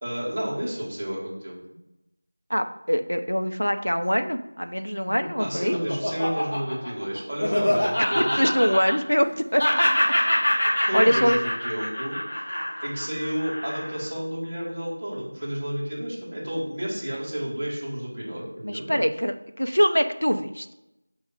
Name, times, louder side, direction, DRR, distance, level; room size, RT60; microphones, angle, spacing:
voice 1, 0.0-1.6 5.4-8.5 10.9-12.2 12.8-19.1, equal, 25° right, -6 dB, 1.7 m, -31 dB
voice 2, 2.5-5.8 8.0-9.3 9.5-9.8 10.7-11.4 18.6-20.7, equal, 80° left, 7 dB, 0.5 m, -23 dB
Laughter, 5.1-9.3 9.6-14.0, left 1 dB, 30° left, 2.1 m, -25 dB
6.2 x 3.1 x 4.8 m, 0.91 s
figure-of-eight pair, 175°, 0 cm